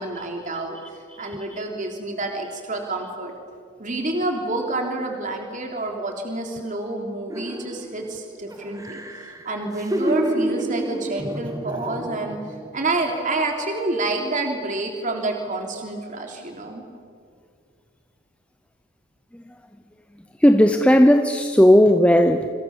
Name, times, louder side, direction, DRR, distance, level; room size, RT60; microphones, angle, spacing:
voice 1, 0.0-3.3 3.8-9.0 9.4-12.4 12.7-16.8, right 2 dB, 35° right, 2 dB, 3.2 m, -28 dB
sound 1, 7.3-8.1 8.5-12.7 13.0-13.2, right 1 dB, 15° right, 1.8 m, -29 dB
voice 2, 20.4-22.5, equal, 5° left, 6 dB, 0.8 m, -15 dB
28.5 x 26.0 x 7.2 m, 2.2 s
head